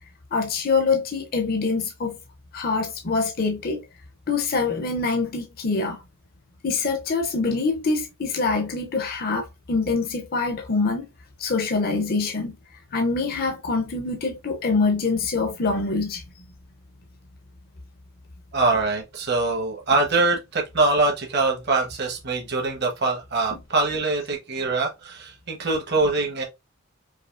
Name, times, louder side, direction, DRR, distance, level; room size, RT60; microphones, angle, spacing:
voice 1, 0.3-2.2 2.5-3.8 4.3-6.0 6.6-11.1 11.4-12.5 12.9-16.2, left 4 dB, 45° left, 0.5 m, -25 dB
voice 2, 18.5-26.4, right 3 dB, 50° right, 1.0 m, -23 dB
4.9 x 2.7 x 2.4 m
head